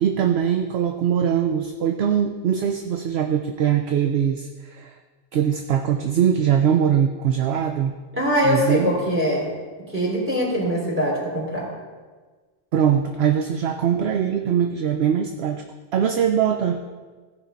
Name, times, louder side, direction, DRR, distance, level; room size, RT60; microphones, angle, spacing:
voice 1, 0.0-5.0 5.3-7.9 8.4-8.9 12.7-15.6 15.9-17.0, right 8 dB, 60° right, 6 dB, 0.8 m, -22 dB
voice 2, 8.1-9.5 9.9-11.7, equal, 10° right, -4 dB, 3.4 m, -22 dB
16.0 x 5.4 x 5.2 m, 1.4 s
omnidirectional pair, 1.4 m